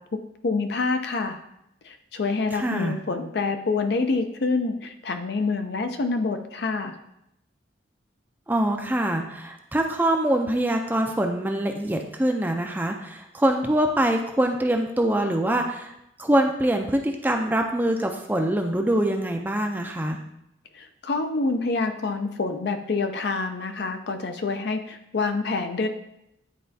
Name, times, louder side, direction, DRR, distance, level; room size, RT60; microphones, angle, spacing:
voice 1, 0.1-1.4 1.8-7.0 20.7-25.9, left 3 dB, 55° left, 7 dB, 0.5 m, -27 dB
voice 2, 2.5-3.0 8.5-15.9 16.2-20.2, right 1 dB, 10° right, 3 dB, 0.4 m, -24 dB
10.0 x 4.2 x 2.7 m, 0.82 s
head